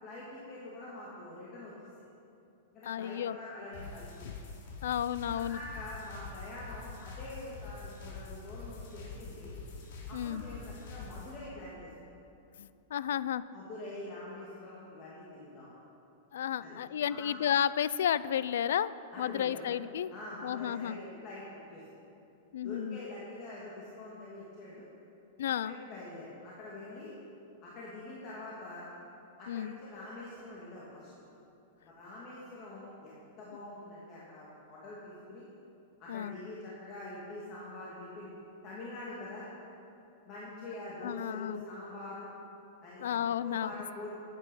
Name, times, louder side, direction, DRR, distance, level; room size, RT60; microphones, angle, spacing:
voice 1, 0.0-1.7 2.7-4.1 5.3-9.5 10.1-11.9 13.5-15.7 16.6-16.8 17.1-17.3 19.1-19.6 20.1-21.8 22.6-24.8 25.5-27.1 27.6-28.9 29.4-31.1 31.8-35.5 36.0-38.3 38.6-39.5 40.2-42.3 42.8-44.1, left 2 dB, 35° left, -7 dB, 2.5 m, -45 dB
voice 2, 2.9-3.4 4.2-4.3 4.8-5.6 10.1-10.4 12.6-13.4 16.3-20.1 20.4-21.0 22.5-23.0 25.4-25.7 29.5-29.7 36.1-36.4 41.0-41.6 43.0-43.7, left 9 dB, 80° left, 17 dB, 0.4 m, -32 dB
sound 1, 3.7-11.3, left 4 dB, 60° left, 3.2 m, -45 dB
14.0 x 9.7 x 5.5 m, 2.7 s
supercardioid pair, 145°, 0 cm